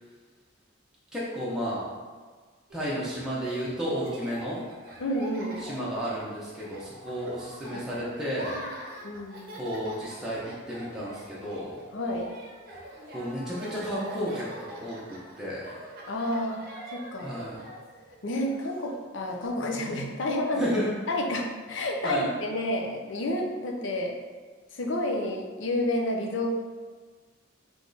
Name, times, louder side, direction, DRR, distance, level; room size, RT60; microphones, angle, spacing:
voice 1, 1.1-1.9 2.7-4.6 5.6-8.6 9.5-11.8 13.1-15.7 17.2-17.6 20.5-20.9 22.0-22.3, equal, 5° right, -8 dB, 0.7 m, -32 dB
Laughter, 2.7-19.5, equal, 45° right, 0.7 m, -45 dB
voice 2, 5.0-5.6 7.7-8.7 9.0-9.6 11.9-12.3 16.1-16.6 16.9-17.3 18.2-20.6 21.1-24.2 24.7-26.5, left 1 dB, 65° left, 1 dB, 0.6 m, -30 dB
3.5 x 3.2 x 3.9 m, 1.5 s
head